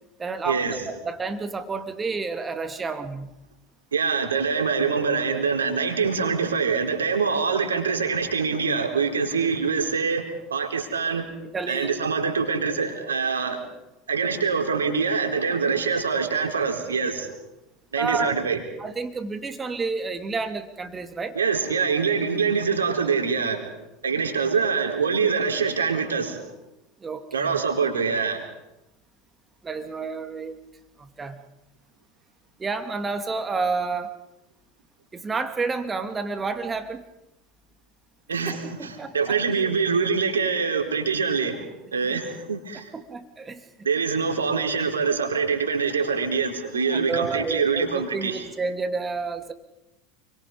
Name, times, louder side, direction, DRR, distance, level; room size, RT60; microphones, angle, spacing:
voice 1, 0.2-3.4 11.4-12.0 18.0-18.4 18.8-21.4 27.0-27.6 29.6-30.6 31.0-31.4 32.6-34.1 35.1-37.0 38.5-39.4 42.0-42.1 42.9-43.7 46.9-49.5, right 4 dB, 20° right, 8 dB, 2.5 m, -30 dB
voice 2, 3.9-11.2 11.7-13.7 14.1-17.3 17.9-18.6 21.4-23.7 24.0-26.5 27.3-28.4 38.3-42.9 43.8-48.4, right 5 dB, 75° right, 3 dB, 3.9 m, -24 dB
29.5 x 23.5 x 5.3 m, 0.93 s
figure-of-eight pair, 75°, 0 cm